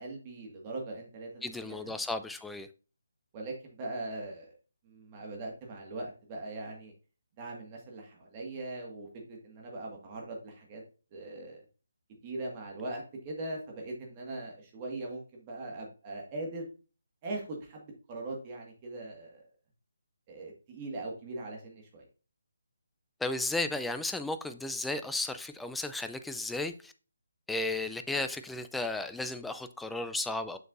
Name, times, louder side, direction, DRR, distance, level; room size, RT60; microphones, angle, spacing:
voice 1, 0.0-2.0 3.3-4.5 4.8-6.9 7.4-10.8 11.1-11.6 12.2-16.7 17.2-19.5 20.3-22.1, right 2 dB, 25° right, 1.8 m, -40 dB
voice 2, 1.4-2.7 23.2-26.9 27.5-30.6, left 2 dB, 5° left, 0.4 m, -34 dB
6.7 x 6.4 x 2.6 m
figure-of-eight pair, 150°, 0 cm